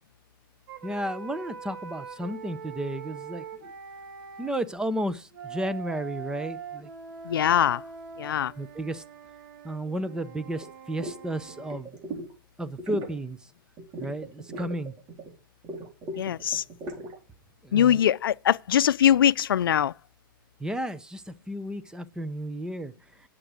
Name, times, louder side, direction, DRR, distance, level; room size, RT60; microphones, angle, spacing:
sound 1, 0.7-4.5 5.3-11.8, right 6 dB, 65° right, 3.5 m, -43 dB
voice 1, 0.8-3.4 4.4-6.9 8.6-9.0 9.6-11.9 12.6-13.4 14.0-14.9 17.7-18.0 20.6-21.2 21.5-22.9, right 1 dB, 5° right, 0.8 m, -32 dB
voice 2, 7.2-7.8 8.2-8.5 16.2-16.6 17.7-19.9, left 10 dB, 90° left, 0.5 m, -22 dB
sound 2, 10.6-10.7 11.0-11.2 11.5-12.3 12.7-13.2 13.8-15.3 15.6-17.2, right 2 dB, 35° right, 4.0 m, -38 dB
11.0 x 7.5 x 5.0 m
hypercardioid pair, 130°, 11 cm